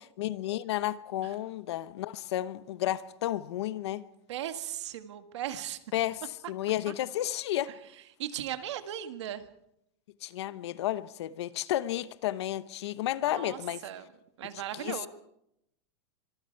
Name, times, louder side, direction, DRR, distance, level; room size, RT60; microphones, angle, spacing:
voice 1, 0.2-4.0 5.9-7.7 10.2-13.8 14.7-15.1, left 13 dB, 70° left, 1.0 m, -32 dB
voice 2, 4.3-5.8 8.2-9.4 13.3-14.0 14.4-15.1, right 11 dB, 80° right, 1.8 m, -37 dB
24.5 x 24.0 x 4.6 m
supercardioid pair, 180°, 15 cm